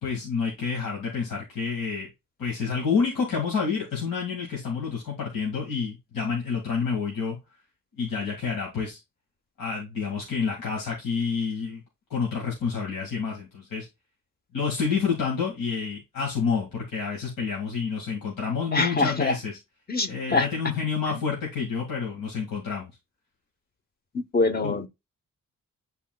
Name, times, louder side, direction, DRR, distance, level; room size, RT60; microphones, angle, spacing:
voice 1, 0.0-2.1 2.4-7.4 8.0-9.0 9.6-11.8 12.1-13.9 14.5-19.5 20.1-22.9 24.6-24.8, left 5 dB, 80° left, 2.0 m, -28 dB
voice 2, 18.7-19.3 19.9-20.5 24.1-24.9, left 3 dB, 30° left, 0.9 m, -24 dB
10.0 x 4.2 x 2.3 m
cardioid pair, 80°, 33 cm